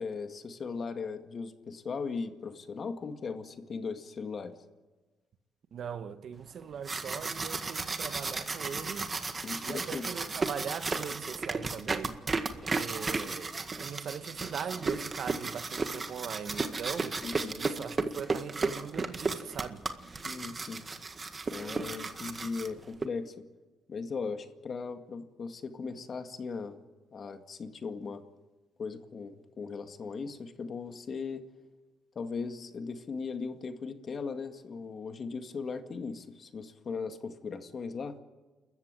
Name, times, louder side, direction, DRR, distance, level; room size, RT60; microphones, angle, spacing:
voice 1, 0.0-4.5 9.4-10.1 17.2-17.6 20.2-20.8 21.5-23.3 23.9-26.8 27.1-28.2 28.8-31.4 32.2-38.2, left 5 dB, 45° left, 2.1 m, -38 dB
voice 2, 5.7-9.1 9.6-12.2 12.7-17.2 17.6-19.8, right 7 dB, 60° right, 1.4 m, -40 dB
sound 1, 6.6-23.1, right 4 dB, 30° right, 1.8 m, -34 dB
29.5 x 14.5 x 9.0 m
cardioid pair, 90°, 0 cm